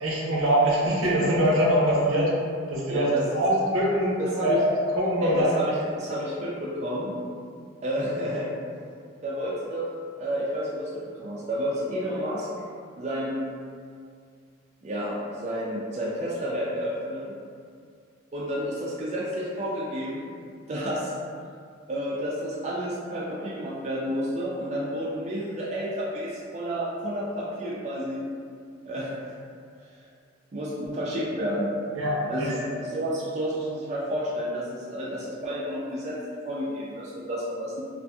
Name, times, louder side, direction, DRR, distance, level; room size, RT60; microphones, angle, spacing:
voice 1, 0.0-2.3 2.7-5.5 31.9-32.5, equal, 85° right, -5 dB, 0.6 m, -23 dB
voice 2, 2.8-3.4 4.2-4.6 5.2-7.1 7.8-8.5 9.2-9.9 10.2-12.5 13.0-13.5 14.8-17.4 18.3-20.3 20.7-21.1 21.9-28.2 28.9-29.3 30.5-31.7 32.3-36.2 36.4-37.8, equal, 35° right, -6 dB, 0.3 m, -30 dB
2.6 x 2.4 x 2.2 m, 2.2 s
head